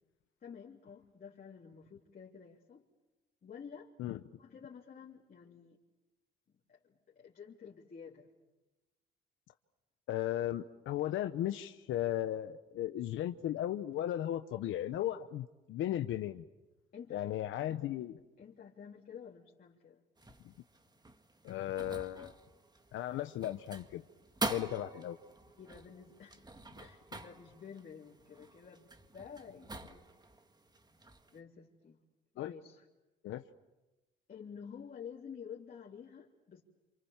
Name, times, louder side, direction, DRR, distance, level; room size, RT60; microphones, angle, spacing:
voice 1, 0.4-2.8 3.4-3.9 4.4-5.8 6.5-8.3 16.9-17.4 18.0-18.1 18.4-20.0 25.6-26.5 26.8-30.1 31.3-32.0 32.3-32.9 34.3-36.6, left 7 dB, 45° left, -3 dB, 3.4 m, -51 dB
voice 2, 10.1-16.4 17.1-18.2 21.4-22.3 22.9-24.0 24.5-25.2 32.4-32.5 33.2-33.4, left 12 dB, 85° left, 8 dB, 0.9 m, -36 dB
sound 1, 20.2-31.4, right 2 dB, 20° right, 1.8 m, -46 dB
28.5 x 27.5 x 7.3 m, 1.1 s
cardioid pair, 90°, 20 cm